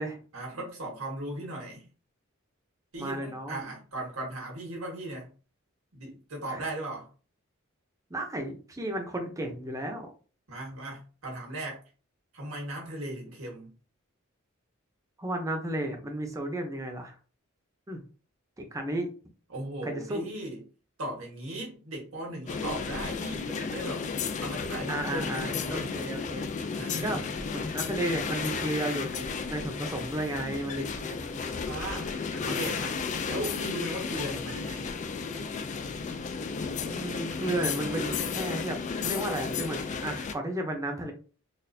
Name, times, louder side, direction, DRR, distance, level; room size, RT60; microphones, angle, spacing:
voice 1, 0.3-1.9 2.9-5.3 5.9-7.1 10.5-11.8 12.3-13.7 19.5-20.6 21.0-24.1 24.3-26.1 26.8-27.4 31.5-32.9 33.3-34.9, right 1 dB, 85° right, 1.5 m, -37 dB
voice 2, 3.0-3.7 6.5-6.6 8.1-10.1 15.2-17.1 17.9-18.0 18.6-19.1 19.8-20.3 24.9-26.5 27.0-31.5 36.9-41.1, right 1 dB, 15° right, 0.6 m, -33 dB
sound 1, 22.5-40.3, left 5 dB, 35° left, 0.3 m, -33 dB
4.1 x 2.4 x 2.6 m
head